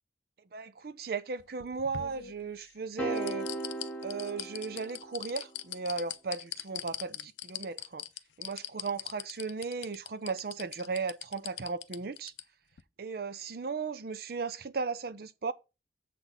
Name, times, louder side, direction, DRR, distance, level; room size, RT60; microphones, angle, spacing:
voice 1, 0.5-3.5 4.0-8.0 8.4-12.3 13.0-15.5, right 4 dB, 55° right, 0.5 m, -36 dB
sound 1, 1.4-2.7 3.2-12.4 12.8-12.9, left 13 dB, 75° left, 0.5 m, -41 dB
sound 2, 3.0-5.4, right 2 dB, 5° left, 1.1 m, -37 dB
7.5 x 4.0 x 6.8 m
head